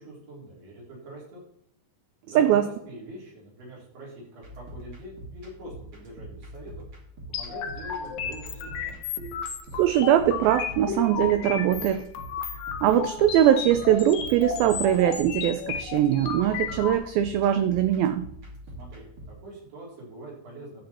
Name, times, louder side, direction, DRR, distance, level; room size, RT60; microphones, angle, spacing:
voice 1, 0.0-1.4 2.2-6.8 7.3-9.0 18.7-20.9, right 1 dB, 70° right, -3 dB, 5.5 m, -44 dB
voice 2, 2.4-2.7 9.8-12.0 12.8-18.3, right 11 dB, 90° right, 10 dB, 2.0 m, -21 dB
sound 1, 4.4-19.3, right 1 dB, 40° right, 2.5 m, -44 dB
sound 2, 7.3-16.9, left 7 dB, 65° left, 2.5 m, -34 dB
11.5 x 7.8 x 4.3 m, 0.75 s
omnidirectional pair, 4.9 m